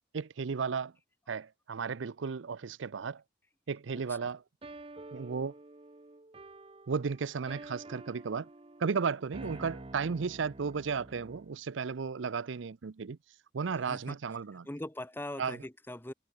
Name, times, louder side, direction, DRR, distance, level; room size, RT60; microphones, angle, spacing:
voice 1, 0.1-0.9 1.3-3.2 3.7-4.4 5.1-5.5 6.9-8.5 8.8-13.2 13.5-14.7 15.4-15.6, right 5 dB, 80° right, 0.5 m, -34 dB
voice 2, 3.9-4.3 9.4-9.7 13.8-14.2 14.6-16.1, left 1 dB, 10° left, 0.9 m, -42 dB
sound 1, 4.6-11.6, right 2 dB, 30° right, 0.8 m, -49 dB
head